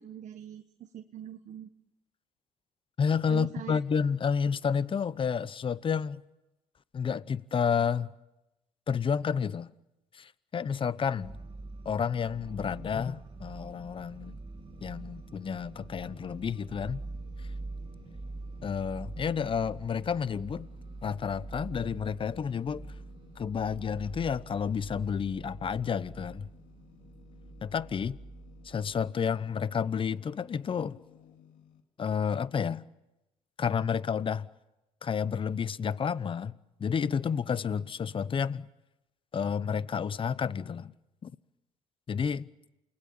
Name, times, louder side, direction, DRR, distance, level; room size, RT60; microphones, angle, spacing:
voice 1, 0.0-1.7 3.3-3.8, right 11 dB, 60° right, 1.4 m, -43 dB
voice 2, 3.0-6.2 6.9-8.1 8.9-9.7 10.1-11.4 11.8-14.4 14.8-17.0 18.6-20.7 21.0-22.9 23.4-26.5 27.6-28.2 28.6-31.0 32.0-32.8 33.6-34.5 35.0-36.5 36.8-38.7 39.3-40.9 41.2-41.3 42.1-42.5, left 6 dB, 40° left, 0.9 m, -30 dB
sound 1, 11.2-29.1, right 3 dB, 40° right, 2.4 m, -45 dB
Ambient Machine Noise, 14.6-31.8, left 8 dB, 80° left, 2.7 m, -58 dB
29.0 x 20.5 x 8.9 m
supercardioid pair, 75°, 14 cm